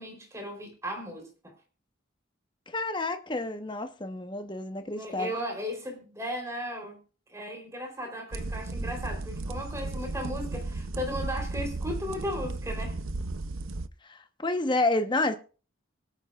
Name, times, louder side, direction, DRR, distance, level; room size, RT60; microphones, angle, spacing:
voice 1, 0.0-1.5 4.9-7.0 7.3-13.0, equal, 15° right, 3.9 m, -36 dB
voice 2, 2.7-5.3 14.0-15.4, left 2 dB, 25° left, 1.1 m, -29 dB
sound 1, 8.3-13.9, right 2 dB, 90° right, 0.7 m, -34 dB
24.5 x 8.9 x 2.5 m
head